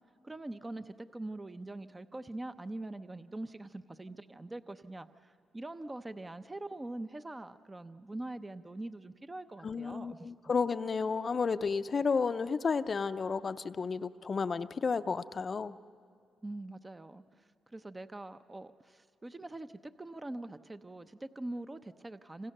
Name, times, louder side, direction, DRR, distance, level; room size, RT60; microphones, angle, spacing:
voice 1, 0.2-10.3 16.4-22.5, right 2 dB, 20° right, 11 dB, 0.7 m, -43 dB
voice 2, 9.6-15.8, left 5 dB, 45° left, 10 dB, 0.6 m, -32 dB
26.5 x 26.5 x 6.7 m, 2.4 s
cardioid pair, 70°, 0 cm